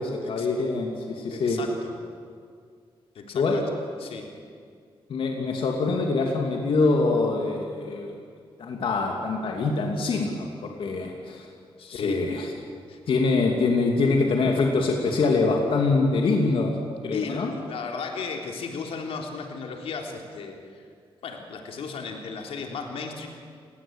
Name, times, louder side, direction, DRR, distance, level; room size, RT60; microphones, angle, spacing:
voice 1, 0.0-1.6 3.3-3.6 5.1-8.1 8.6-11.5 11.9-12.5 13.1-16.7 17.0-17.5, left 3 dB, 65° left, 1 dB, 3.0 m, -24 dB
voice 2, 1.3-1.9 3.2-3.7 4.0-4.3 11.8-12.2 12.9-13.0 17.1-20.8 21.2-23.3, left 5 dB, 85° left, 2 dB, 3.6 m, -35 dB
29.5 x 19.0 x 9.1 m, 2.2 s
wide cardioid pair, 150°, 10 cm